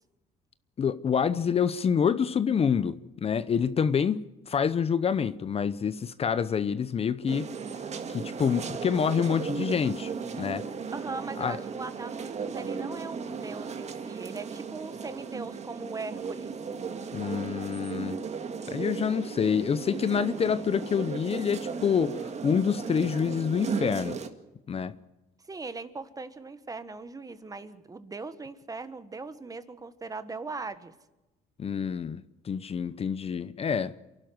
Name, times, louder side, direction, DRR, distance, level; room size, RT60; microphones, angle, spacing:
voice 1, 0.8-7.5 8.1-10.1 10.4-10.6 11.4-11.6 17.1-18.2 18.7-24.2 24.7-25.0 31.6-33.9, left 7 dB, 35° left, 0.8 m, -27 dB
sound 1, 7.3-24.3, right 5 dB, 40° right, 2.0 m, -36 dB
voice 2, 10.9-16.6 25.4-30.9, right 3 dB, 20° right, 1.5 m, -40 dB
28.0 x 12.0 x 7.9 m
cardioid pair, 110°, 17 cm